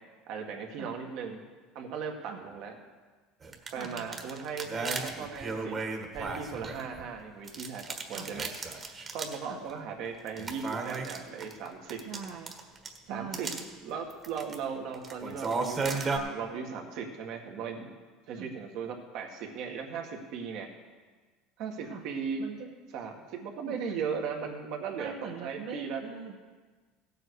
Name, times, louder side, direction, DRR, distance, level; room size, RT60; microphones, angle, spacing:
voice 1, 0.3-1.4 1.8-2.7 3.7-5.8 6.1-8.5 9.1-12.0 13.1-13.5 13.8-17.9 18.3-20.7 21.6-22.4 22.9-25.1 25.4-26.0, right 6 dB, 65° right, 3 dB, 1.8 m, -37 dB
sound 1, 3.4-7.1 7.5-9.4 9.7-9.8 10.3-13.0 13.3-13.6 14.1-14.6 14.9-16.2, right 4 dB, 30° right, 1.5 m, -34 dB
voice 2, 3.7-4.3 8.1-8.3 9.4-9.6 12.0-12.5 13.1-13.7 18.3-18.5 21.8-22.1 22.4-22.7 23.7-23.9 25.0-26.4, right 6 dB, 80° right, -2 dB, 1.3 m, -42 dB
16.0 x 7.7 x 4.8 m, 1.4 s
supercardioid pair, 115°, 0 cm